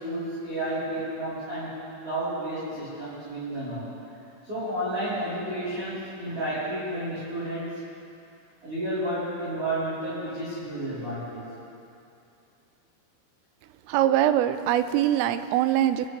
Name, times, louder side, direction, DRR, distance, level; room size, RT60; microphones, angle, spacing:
voice 1, 0.0-1.7 2.0-3.9 4.4-7.6 8.6-11.4, right 1 dB, 30° right, -12 dB, 4.2 m, -31 dB
voice 2, 13.9-16.1, right 12 dB, 85° right, 11 dB, 3.1 m, -23 dB
22.5 x 12.0 x 3.3 m, 2.6 s
omnidirectional pair, 5.8 m